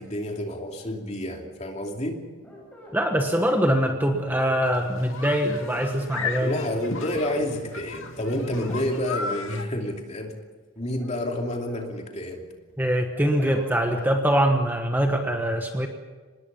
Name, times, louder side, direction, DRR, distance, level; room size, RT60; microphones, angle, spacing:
voice 1, 0.0-2.2 6.4-10.3 10.8-12.4, left 1 dB, 30° left, 2 dB, 2.8 m, -29 dB
sound 1, 2.4-4.5 5.8-6.9 8.1-9.3 10.8-11.9 12.3-14.1, equal, 5° left, 6.7 m, -43 dB
voice 2, 2.9-6.6 12.8-15.9, equal, 10° right, 3 dB, 1.3 m, -23 dB
sound 2, 4.6-9.6, left 4 dB, 70° left, 2.1 m, -35 dB
25.5 x 20.0 x 5.5 m, 1.4 s
head